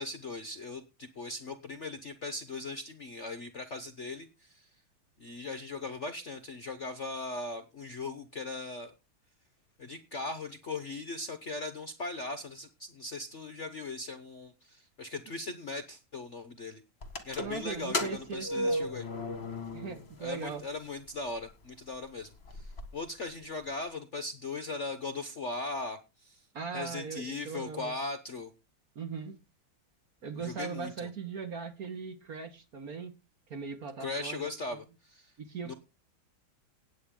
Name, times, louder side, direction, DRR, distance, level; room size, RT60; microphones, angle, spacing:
voice 1, 0.0-4.7 5.2-8.9 9.8-16.8 17.2-19.0 20.2-26.4 26.7-28.5 30.4-31.1 34.0-35.3 35.6-35.7, left 3 dB, 45° left, 1.0 m, -39 dB
sound 1, 17.0-20.2 20.5-20.6 21.4-21.5 21.9-22.0 22.2-22.8, left 1 dB, 30° left, 2.0 m, -34 dB
voice 2, 17.4-18.9 19.7-20.6 26.5-27.9 29.0-29.4 30.2-33.1 33.5-34.5 35.4-35.7, right 5 dB, 45° right, 1.8 m, -39 dB
16.0 x 9.3 x 3.8 m
omnidirectional pair, 2.3 m